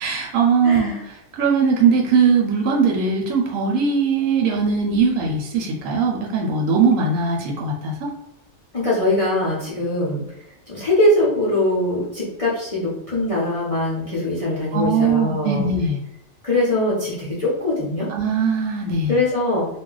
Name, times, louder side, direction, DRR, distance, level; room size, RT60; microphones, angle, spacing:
voice 1, 0.0-7.9 14.7-16.0 18.1-19.1, right 5 dB, 75° right, -1 dB, 0.9 m, -20 dB
voice 2, 0.6-1.0 8.7-10.2 10.7-15.7 16.4-18.1 19.1-19.7, left 1 dB, 45° left, -7 dB, 0.4 m, -22 dB
2.3 x 2.1 x 3.7 m, 0.83 s
omnidirectional pair, 1.5 m